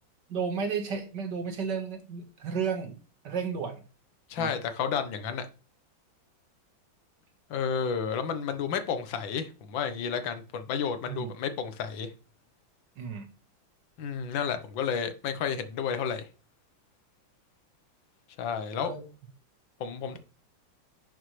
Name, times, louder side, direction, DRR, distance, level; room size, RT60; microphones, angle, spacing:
voice 1, 0.3-3.8 4.4-4.5 11.1-11.3 13.0-13.3 18.8-19.1, right 6 dB, 60° right, 2.1 m, -33 dB
voice 2, 4.3-5.5 7.5-12.1 14.0-16.3 18.4-18.9 19.8-20.2, left 7 dB, 70° left, 1.8 m, -31 dB
11.0 x 6.4 x 3.2 m
omnidirectional pair, 2.2 m